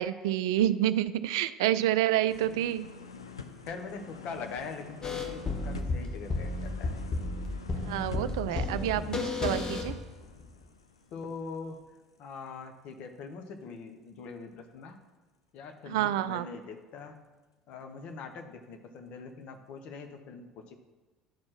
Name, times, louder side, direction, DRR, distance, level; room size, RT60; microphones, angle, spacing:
voice 1, 0.0-2.9 7.8-10.0 15.9-16.5, right 12 dB, 65° right, 14 dB, 0.3 m, -28 dB
sound 1, 2.3-12.1 12.5-12.6, left 5 dB, 85° left, 0.5 m, -47 dB
voice 2, 3.6-7.0 8.5-9.1 11.1-11.8 12.2-15.0 15.5-17.2 17.7-20.7, left 4 dB, 55° left, 6 dB, 1.0 m, -43 dB
sound 2, 5.0-10.5, left 3 dB, 25° left, 1.1 m, -33 dB
10.0 x 4.3 x 5.8 m, 1.2 s
figure-of-eight pair, 60°, 3 cm